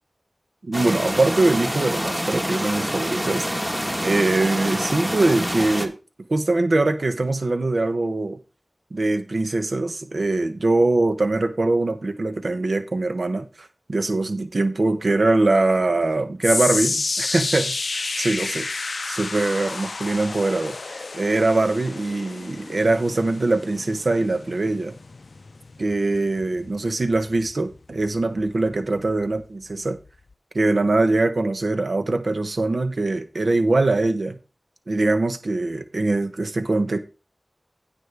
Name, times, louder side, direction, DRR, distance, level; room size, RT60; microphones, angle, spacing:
voice 1, 0.6-3.5 4.0-5.9 6.3-8.4 8.9-18.7 19.1-24.9 25.8-30.0 30.5-34.4 34.9-37.0, right 2 dB, 80° right, 0.9 m, -22 dB
sound 1, 0.7-5.9, equal, 10° right, 1.4 m, -26 dB
sound 2, 16.4-28.7 29.1-29.4 30.1-30.2, left 3 dB, 90° left, 0.4 m, -31 dB
16.0 x 5.5 x 3.4 m
wide cardioid pair, 60°, 0 cm